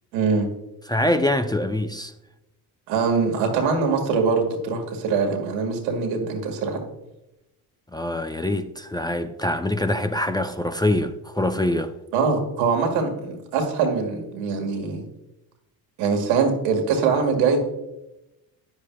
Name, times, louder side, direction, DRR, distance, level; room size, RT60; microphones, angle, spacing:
voice 1, 0.1-0.5 2.9-6.8 12.1-15.1 16.0-17.6, right 5 dB, 85° right, 1.8 m, -23 dB
voice 2, 0.9-2.1 7.9-11.9, left 1 dB, 10° left, 0.5 m, -24 dB
9.8 x 9.8 x 2.3 m
hypercardioid pair, 60°, 48 cm